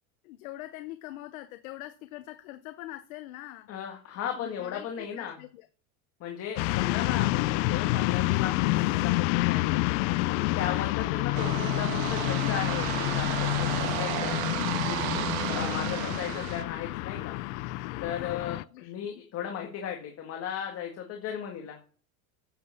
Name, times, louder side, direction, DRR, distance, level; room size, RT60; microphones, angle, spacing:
voice 1, 0.2-3.7 4.3-5.7 18.2-18.9 19.4-19.5, left 16 dB, 85° left, 9 dB, 1.0 m, -43 dB
voice 2, 3.7-5.3 6.2-9.8 10.3-14.4 14.8-17.4 18.0-21.8, left 8 dB, 35° left, 2 dB, 1.9 m, -36 dB
sound 1, 6.6-18.6, left 19 dB, 60° left, 0.5 m, -28 dB
sound 2, 11.3-16.6, right 16 dB, 80° right, 0.9 m, -33 dB
10.0 x 7.6 x 6.6 m, 0.42 s
supercardioid pair, 150°, 41 cm